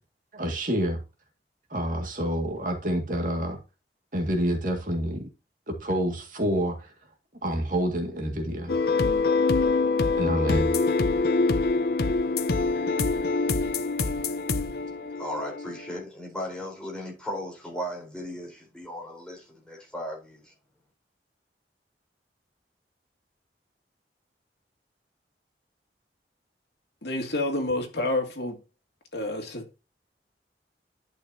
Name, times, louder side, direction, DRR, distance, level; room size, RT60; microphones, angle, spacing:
voice 1, 0.3-1.0 1.7-3.6 4.1-5.3 5.7-6.9 7.4-8.7 10.2-10.7, equal, 50° right, 2.1 m, -27 dB
sound 1, 8.7-16.0, left 3 dB, 60° left, 0.7 m, -25 dB
voice 2, 15.2-20.5, equal, 5° left, 4.2 m, -36 dB
voice 3, 27.0-28.6 29.1-29.8, left 2 dB, 75° left, 2.4 m, -29 dB
11.5 x 6.4 x 2.8 m
head